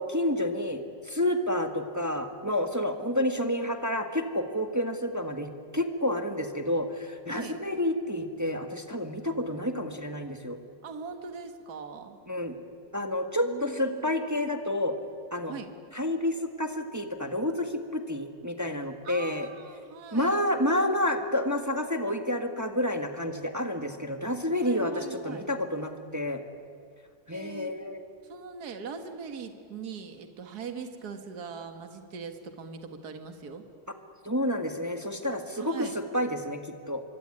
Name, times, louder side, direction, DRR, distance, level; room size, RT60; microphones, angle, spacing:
voice 1, 0.0-10.6 12.3-12.6 12.9-15.0 15.3-15.5 15.9-19.5 20.1-26.4 27.3-28.0 34.2-37.0, left 1 dB, 10° right, 6 dB, 1.5 m, -29 dB
voice 2, 7.3-7.6 10.8-12.2 13.4-14.1 15.5-15.7 19.0-20.4 24.6-25.5 27.3-27.7 28.2-33.6 35.6-35.9, right 5 dB, 60° right, 7 dB, 2.2 m, -41 dB
25.0 x 24.5 x 9.9 m, 2.3 s
omnidirectional pair, 2.0 m